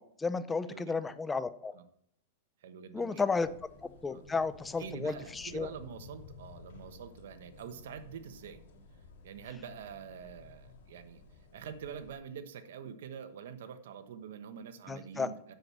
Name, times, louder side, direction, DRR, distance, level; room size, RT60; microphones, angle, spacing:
voice 1, 0.0-1.7 2.9-3.5 4.0-5.7 14.9-15.3, left 4 dB, 10° left, 14 dB, 0.5 m, -33 dB
voice 2, 0.7-1.1 1.7-1.8 2.6-3.5 4.1-4.3 4.8-8.6 9.2-11.2 11.5-15.5, right 7 dB, 75° right, 10 dB, 1.1 m, -46 dB
sound 1, 3.4-12.1, left 4 dB, 75° left, 2.0 m, -54 dB
7.8 x 7.0 x 6.0 m, 0.70 s
hypercardioid pair, 135°, 0 cm